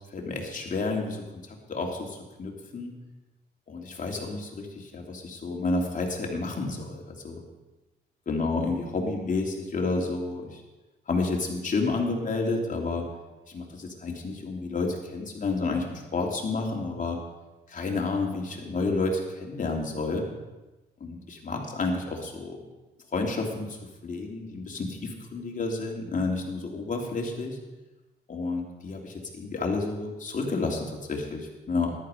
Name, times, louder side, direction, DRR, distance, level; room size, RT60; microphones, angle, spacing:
voice 1, 0.1-2.9 3.7-7.4 8.3-10.6 11.1-13.1 13.5-17.2 17.7-20.3 21.0-22.6 23.1-27.6 28.3-32.0, left 3 dB, 40° left, 1 dB, 3.0 m, -30 dB
14.5 x 11.5 x 5.2 m, 1.1 s
cardioid pair, 90°, 20 cm